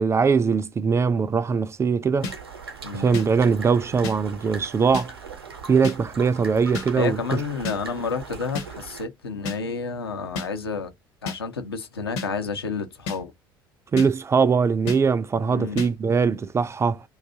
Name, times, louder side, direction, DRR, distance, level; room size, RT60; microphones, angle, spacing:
voice 1, 0.0-2.3 2.9-5.1 5.7-7.4 13.9-17.0, right 5 dB, 20° right, 0.3 m, -21 dB
sound 1, 2.2-2.4 3.1-3.3 4.0-4.2 4.9-5.1 5.8-6.0 6.7-6.9 7.6-7.8 8.5-8.7 9.4-9.6 10.4-10.5 11.3-11.4 12.2-12.3 13.1-13.2 14.0-14.1 14.9-15.0 15.8-15.9, left 4 dB, 60° left, 1.0 m, -30 dB
sound 2, 2.2-9.1, right 5 dB, 80° right, 0.8 m, -40 dB
voice 2, 2.8-3.2 7.0-10.9 11.2-13.3 15.5-15.9, left 5 dB, 80° left, 0.6 m, -30 dB
2.6 x 2.4 x 3.7 m
figure-of-eight pair, 55°, 13 cm